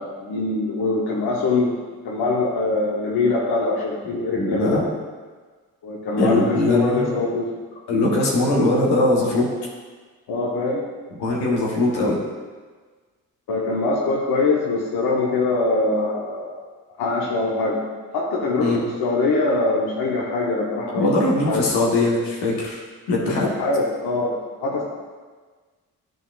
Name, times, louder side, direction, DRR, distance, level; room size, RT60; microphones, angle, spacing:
voice 1, 0.0-1.7 2.0-4.8 5.8-7.6 10.3-10.9 13.5-16.6 17.0-17.8 18.1-21.7 23.2-24.4 24.6-24.8, left 3 dB, 70° left, -4 dB, 1.1 m, -23 dB
voice 2, 4.0-4.9 6.2-7.2 7.9-9.5 11.2-12.2 18.6-18.8 21.0-22.8 23.1-23.5, left 2 dB, 85° left, -4 dB, 1.4 m, -21 dB
10.5 x 3.9 x 2.5 m, 1.4 s
supercardioid pair, 55°, 39 cm